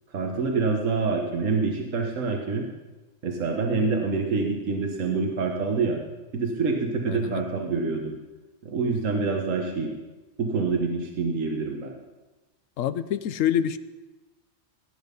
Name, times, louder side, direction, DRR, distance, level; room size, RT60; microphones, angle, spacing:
voice 1, 0.1-2.7 3.2-6.0 6.3-8.1 8.6-9.9 10.4-11.9, right 4 dB, 75° right, 2 dB, 1.8 m, -26 dB
voice 2, 7.1-7.4 12.8-13.8, left 10 dB, 75° left, 14 dB, 1.0 m, -26 dB
18.0 x 10.5 x 5.4 m, 1.1 s
omnidirectional pair, 1.4 m